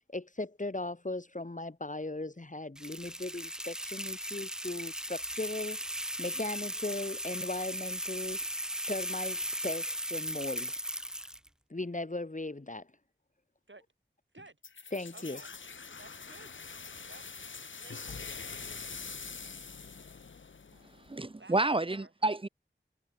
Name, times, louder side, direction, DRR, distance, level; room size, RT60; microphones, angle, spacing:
voice 1, 0.1-5.8 6.2-8.4 8.9-10.7 11.7-12.9 14.9-15.4, left 2 dB, 40° left, 1.5 m, -38 dB
sound 1, 2.8-11.5, equal, 5° right, 0.4 m, -37 dB
sound 2, 14.6-21.2, left 5 dB, 75° left, 0.8 m, -44 dB
voice 2, 15.1-15.5 16.0-16.6 17.1-17.2 17.8-18.3 21.4-22.1, right 2 dB, 70° right, 5.7 m, -53 dB
voice 3, 21.1-22.5, right 2 dB, 25° right, 0.7 m, -29 dB
wide cardioid pair, 40°, 20 cm